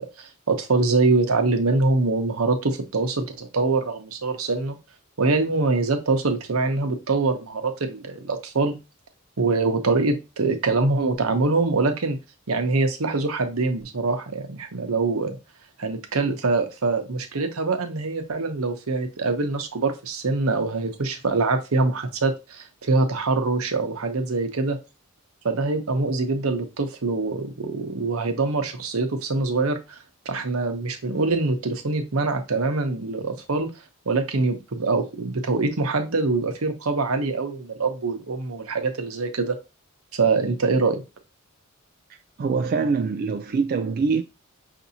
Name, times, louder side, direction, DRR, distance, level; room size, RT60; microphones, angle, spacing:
voice 1, 0.0-4.8 5.2-8.8 9.4-12.2 12.5-15.4 15.8-24.8 25.4-30.0 30.3-33.7 34.1-39.6 40.1-41.0, right 3 dB, 85° right, 0.8 m, -24 dB
voice 2, 42.4-44.2, right 4 dB, 45° right, 0.3 m, -24 dB
5.8 x 2.7 x 2.7 m
head